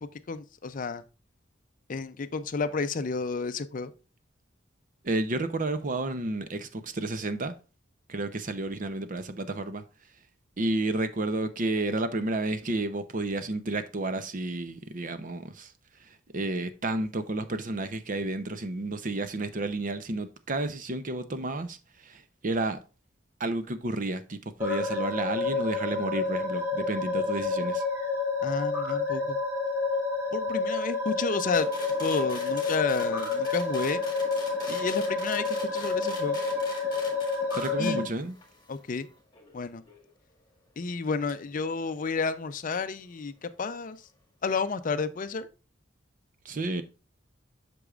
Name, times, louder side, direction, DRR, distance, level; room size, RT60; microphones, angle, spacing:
voice 1, 0.3-1.0 1.9-3.9 28.4-29.4 30.3-31.7 32.0-34.0 34.7-35.4 35.7-36.4 37.8-38.1 38.7-39.1 39.5-39.8 40.8-44.0 44.4-45.5, left 4 dB, 45° left, 0.5 m, -31 dB
voice 2, 5.0-7.5 8.1-9.8 10.6-15.7 16.3-21.8 22.0-22.8 23.4-27.8 37.5-38.4 46.4-46.8, right 2 dB, 45° right, 0.6 m, -31 dB
sound 1, 24.6-38.0, left 4 dB, 10° right, 2.1 m, -29 dB
sound 2, 31.5-40.1 41.3-41.4, left 3 dB, 20° left, 1.9 m, -44 dB
8.1 x 6.1 x 2.4 m
head